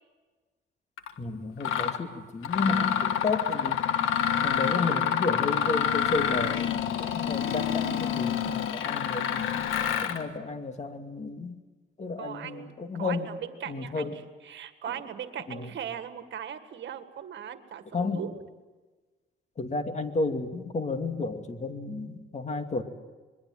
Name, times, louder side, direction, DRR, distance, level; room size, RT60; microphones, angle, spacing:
Mechanisms, 1.0-1.1 1.6-2.0 2.4-10.2, left 9 dB, 90° left, 1.6 m, -27 dB
voice 1, 1.2-3.8 4.4-9.5 10.0-11.6 12.0-13.3 13.7-14.2 15.5-15.7 17.9-18.2 19.6-22.8, left 3 dB, 35° left, 7 dB, 2.5 m, -32 dB
voice 2, 7.0-7.4 12.2-18.4, right 9 dB, 65° right, 9 dB, 1.8 m, -39 dB
26.5 x 22.0 x 7.8 m, 1.3 s
cardioid pair, 90°, 20 cm